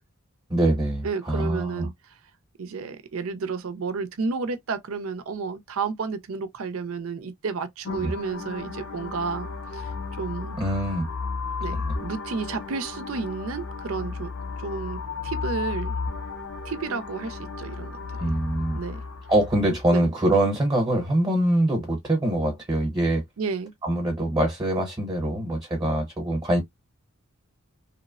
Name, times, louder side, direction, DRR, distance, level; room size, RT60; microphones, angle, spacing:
voice 1, 0.5-1.9 8.0-8.1 10.6-11.1 11.9-12.0 18.2-18.8 19.3-23.2 23.8-26.6, right 1 dB, 20° right, 0.9 m, -24 dB
voice 2, 1.0-1.9 2.6-10.6 11.6-14.3 14.6-16.0 16.6-18.3 18.7-19.0 19.9-20.1 23.4-23.7, right 4 dB, 75° right, 0.5 m, -31 dB
sound 1, 7.8-19.8, left 4 dB, 75° left, 0.7 m, -34 dB
3.0 x 2.0 x 2.3 m
head